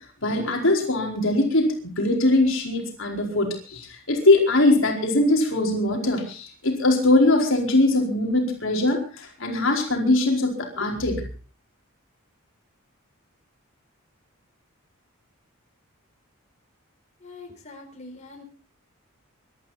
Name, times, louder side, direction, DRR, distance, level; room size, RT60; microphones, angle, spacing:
voice 1, 0.2-11.2, left 2 dB, 65° left, 1 dB, 4.8 m, -21 dB
voice 2, 17.2-18.4, left 3 dB, 35° left, 1 dB, 4.7 m, -43 dB
24.5 x 13.0 x 4.2 m, 0.38 s
head